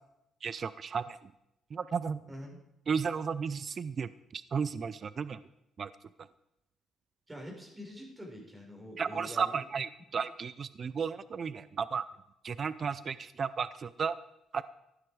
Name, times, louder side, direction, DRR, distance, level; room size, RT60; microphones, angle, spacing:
voice 1, 0.4-1.3 1.7-2.2 2.9-5.4 5.8-5.9 6.2-6.3 9.0-12.1 12.4-14.2 14.5-14.7, right 6 dB, 45° right, 16 dB, 0.5 m, -34 dB
voice 2, 2.3-2.6 7.3-9.6, equal, 15° right, 0 dB, 4.7 m, -45 dB
15.0 x 11.5 x 4.8 m, 0.86 s
cardioid pair, 90°, 0 cm